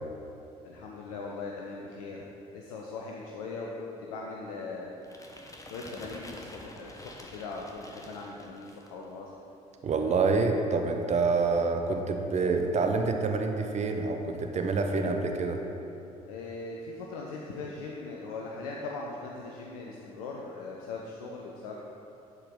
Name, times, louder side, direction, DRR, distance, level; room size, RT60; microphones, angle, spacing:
voice 1, 0.6-2.2 2.5-4.9 5.7-9.3 16.3-21.8, left 3 dB, 70° left, -1 dB, 0.6 m, -40 dB
sound 1, 5.0-9.0, left 1 dB, 15° left, 0.9 m, -47 dB
voice 2, 9.8-15.6, right 4 dB, 35° right, 4 dB, 0.7 m, -27 dB
11.0 x 4.6 x 3.7 m, 2.8 s
figure-of-eight pair, 50°, 19 cm